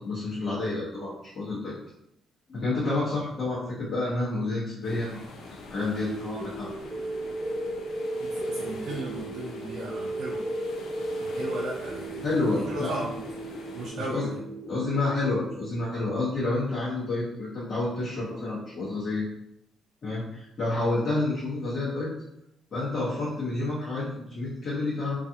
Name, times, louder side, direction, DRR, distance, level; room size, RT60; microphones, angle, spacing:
voice 1, 0.0-1.7 2.5-5.3 5.7-6.7 12.2-12.9 14.1-14.2 14.7-19.3 20.0-22.1 22.7-25.2, left 2 dB, 45° left, -9 dB, 1.0 m, -29 dB
sound 1, 4.8-13.9, left 3 dB, 80° left, 0.5 m, -45 dB
sound 2, 5.9-15.9, right 1 dB, 5° right, 0.3 m, -35 dB
voice 2, 8.2-10.5 11.2-13.1 13.7-14.4, right 1 dB, 70° right, -5 dB, 0.5 m, -36 dB
2.4 x 2.3 x 2.7 m, 0.81 s
cardioid pair, 90°, 0 cm